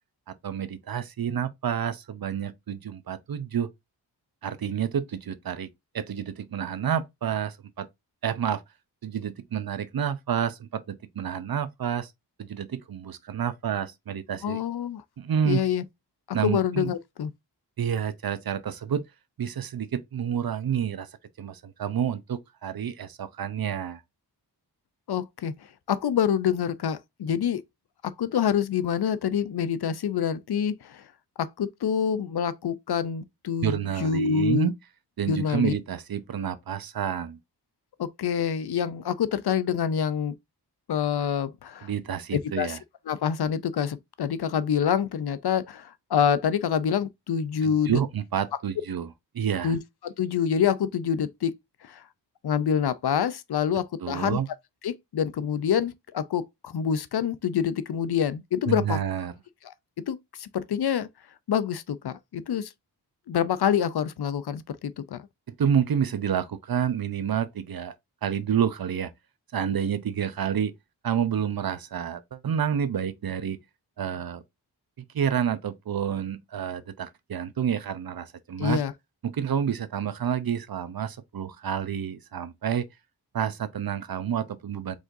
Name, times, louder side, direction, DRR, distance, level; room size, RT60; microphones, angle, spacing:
voice 1, 0.3-3.7 4.4-5.7 5.9-7.9 8.2-8.6 9.0-12.1 12.4-14.6 15.2-15.6 16.3-16.9 17.8-19.0 19.4-21.1 21.4-24.0 33.6-34.7 35.2-37.4 41.8-42.8 47.6-49.1 49.3-49.7 54.0-54.5 58.7-59.3 65.5-67.9 68.2-69.1 69.5-70.7 71.0-73.6 74.0-74.4 75.1-78.8 79.2-82.9 83.3-85.0, right 8 dB, 60° right, 0.7 m, -29 dB
voice 2, 14.4-15.0 15.4-15.8 16.3-17.3 25.1-27.6 28.0-31.1 31.4-34.7 35.3-35.7 38.0-40.4 40.9-41.9 42.3-42.8 43.1-48.0 49.6-51.5 51.8-52.1 52.4-54.4 54.8-59.0 59.6-59.7 60.1-61.1 61.5-62.7 63.3-65.3 78.6-78.9, left 8 dB, 65° left, 0.6 m, -26 dB
4.9 x 3.9 x 2.6 m
wide cardioid pair, 80°, 41 cm